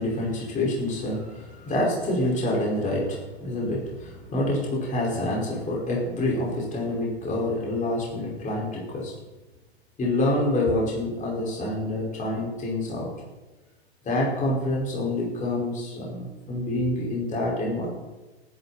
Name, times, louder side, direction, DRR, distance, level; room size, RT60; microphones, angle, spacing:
voice 1, 0.0-9.1 10.0-13.1 14.0-17.9, left 1 dB, 25° left, -3 dB, 5.4 m, -27 dB
19.5 x 11.0 x 4.4 m, 1.1 s
hypercardioid pair, 115°, 31 cm